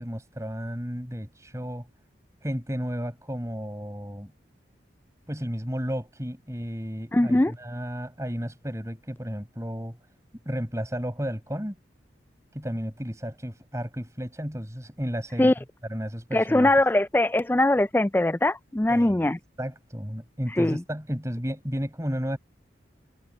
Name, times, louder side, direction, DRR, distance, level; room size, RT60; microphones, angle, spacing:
voice 1, 0.0-1.9 2.4-4.3 5.3-10.0 10.4-11.7 12.5-15.5 15.9-16.7 18.9-19.2 19.6-22.4, equal, 15° right, 6.4 m, -33 dB
voice 2, 7.1-7.5 15.4-15.5 16.3-19.4 20.5-20.8, left 1 dB, 10° left, 0.3 m, -21 dB
head